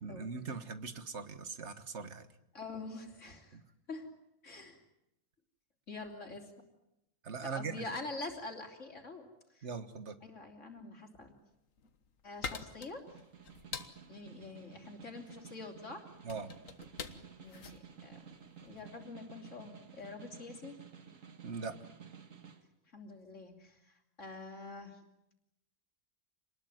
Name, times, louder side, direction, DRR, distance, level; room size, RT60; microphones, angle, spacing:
voice 1, 0.0-2.3 3.5-3.6 7.2-7.8 9.6-10.2 16.3-16.5 21.4-21.7, right 5 dB, 60° right, 11 dB, 1.8 m, -41 dB
voice 2, 2.5-3.6 3.9-4.1 4.4-4.8 5.9-6.5 7.4-9.7 10.2-11.3 12.2-13.0 14.1-16.1 17.4-18.3 18.6-20.8 22.9-25.0, left 3 dB, 65° left, 3 dB, 3.6 m, -46 dB
sound 1, 11.5-19.0, left 5 dB, 85° left, 1.8 m, -46 dB
Snare drum, 12.9-22.6, right 7 dB, 80° right, 2.0 m, -54 dB
26.0 x 20.0 x 9.4 m, 0.86 s
omnidirectional pair, 1.3 m